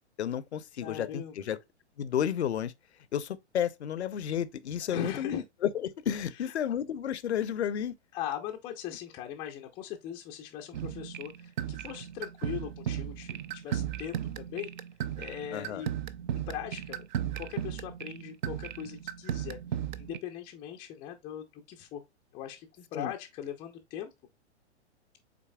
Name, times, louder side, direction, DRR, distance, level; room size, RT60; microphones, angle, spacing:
voice 1, 0.2-1.6 2.0-2.7 3.1-7.9 15.5-15.8 22.9-23.1, left 9 dB, 70° left, 0.6 m, -32 dB
voice 2, 0.8-1.4 4.9-5.4 6.4-6.5 8.1-14.7 15.2-15.9 16.3-17.0 17.3-19.6 20.0-22.0 22.3-24.1, left 10 dB, 15° left, 0.4 m, -40 dB
sound 1, 10.7-20.2, right 10 dB, 45° right, 0.4 m, -36 dB
6.0 x 3.9 x 2.2 m
figure-of-eight pair, 105°, 35 cm